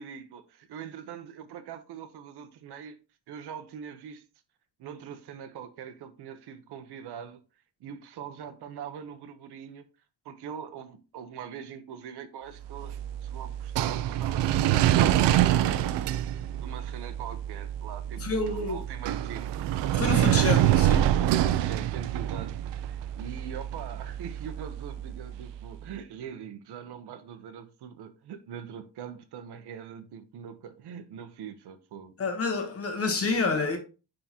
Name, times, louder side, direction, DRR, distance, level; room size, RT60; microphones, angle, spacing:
voice 1, 0.0-3.0 3.3-4.2 4.8-7.4 7.8-9.8 10.2-12.9 13.2-20.6 21.2-32.1, right 8 dB, 70° right, 1.0 m, -43 dB
sound 1, 12.6-25.7, right 12 dB, 90° right, 0.6 m, -26 dB
voice 2, 18.2-18.8 19.9-21.0 32.2-33.8, left 3 dB, 35° left, 1.3 m, -28 dB
9.7 x 3.8 x 2.9 m
cardioid pair, 175°, 41 cm